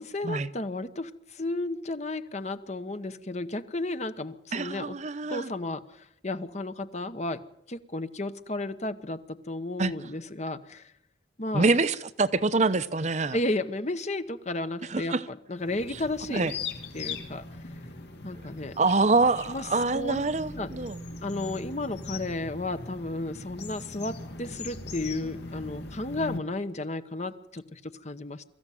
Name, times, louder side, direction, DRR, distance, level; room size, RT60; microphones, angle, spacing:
voice 1, 0.0-5.0 5.3-7.4 7.7-10.9 11.4-11.7 13.3-16.5 16.9-17.6 18.2-18.8 19.5-20.2 20.5-20.7 21.2-28.4, left 2 dB, 40° left, 1.1 m, -33 dB
voice 2, 4.5-5.5 9.8-9.9 11.5-13.4 14.9-15.2 16.3-16.5 18.8-21.0, right 3 dB, 40° right, 0.8 m, -25 dB
sound 1, 15.6-26.4, left 3 dB, 65° left, 2.3 m, -40 dB
23.5 x 14.5 x 9.2 m
head